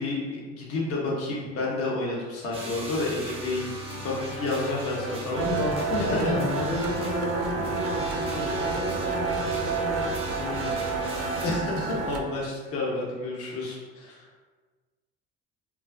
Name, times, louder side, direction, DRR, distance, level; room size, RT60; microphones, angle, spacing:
voice 1, 0.0-5.4 6.1-6.4 10.9-14.3, left 2 dB, 50° left, -4 dB, 0.9 m, -30 dB
sound 1, 2.5-11.5, right 1 dB, 20° right, 0.7 m, -37 dB
sound 2, 5.3-12.2, right 4 dB, 60° right, 0.4 m, -30 dB
voice 2, 5.4-10.8, left 2 dB, 85° left, -1 dB, 0.6 m, -32 dB
2.4 x 2.3 x 2.4 m, 1.4 s
supercardioid pair, 75°, 29 cm